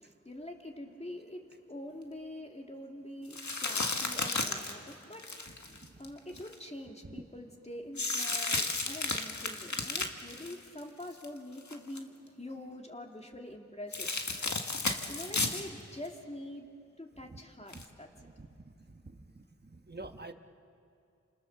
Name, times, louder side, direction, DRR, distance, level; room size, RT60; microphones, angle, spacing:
voice 1, 0.0-14.1 15.1-16.7 17.0-18.1, left 1 dB, 20° left, 2 dB, 2.8 m, -45 dB
sound 1, 3.3-6.5 8.0-11.2 11.6-12.0 13.9-15.7 16.0-16.1 17.7-17.8, left 3 dB, 75° left, 1.8 m, -33 dB
voice 2, 5.7-6.0 17.3-17.4 17.7-17.8 18.1-20.3, right 2 dB, 35° right, 7 dB, 1.3 m, -49 dB
29.5 x 27.0 x 6.9 m, 2.5 s
wide cardioid pair, 55°, 29 cm